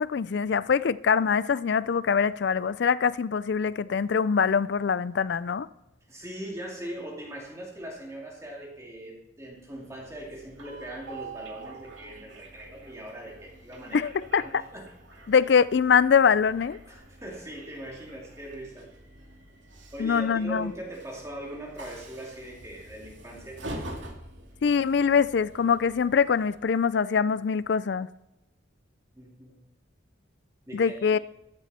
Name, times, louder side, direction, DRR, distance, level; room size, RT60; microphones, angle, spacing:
voice 1, 0.0-5.7 13.9-14.4 15.3-16.8 20.0-20.7 24.6-28.1 30.7-31.2, left 6 dB, 60° left, 0.4 m, -23 dB
voice 2, 6.1-14.1 14.4-15.2 16.9-18.9 19.9-23.6 29.2-29.6 30.7-31.1, right 1 dB, 15° right, 2.5 m, -41 dB
Train, 9.6-26.9, right 2 dB, 70° right, 2.5 m, -46 dB
14.0 x 12.0 x 4.2 m
head